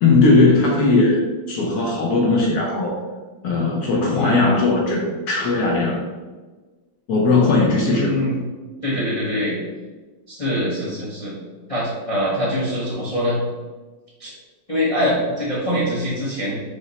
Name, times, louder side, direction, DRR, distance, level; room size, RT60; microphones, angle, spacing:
voice 1, 0.0-3.0 3.4-6.0 7.1-8.1, left 3 dB, 70° left, -2 dB, 1.0 m, -18 dB
voice 2, 4.1-4.5 7.8-8.4 8.8-9.6 10.3-11.4 11.7-13.4 14.2-14.3 14.7-16.6, equal, 40° left, -7 dB, 0.4 m, -23 dB
5.1 x 2.1 x 3.9 m, 1.3 s
omnidirectional pair, 2.1 m